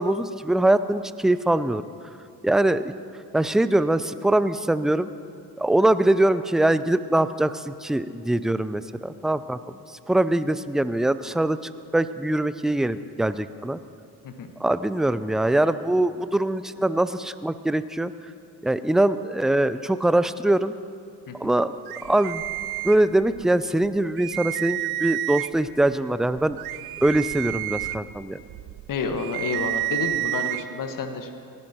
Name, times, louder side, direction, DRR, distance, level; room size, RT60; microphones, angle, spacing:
voice 1, 0.0-1.8 2.4-2.9 3.3-5.1 5.6-9.6 10.1-11.6 11.9-13.8 14.6-18.1 18.6-20.7 21.4-21.7 22.0-22.4 22.8-26.6 27.0-28.4, right 1 dB, ahead, 14 dB, 0.4 m, -22 dB
sound 1, 21.9-23.4 23.8-23.9 24.2-25.7 26.2-30.6, right 17 dB, 50° right, 0.7 m, -30 dB
voice 2, 28.9-31.3, left 4 dB, 40° left, 7 dB, 1.6 m, -29 dB
28.5 x 11.5 x 4.4 m, 2.6 s
figure-of-eight pair, 45°, 48 cm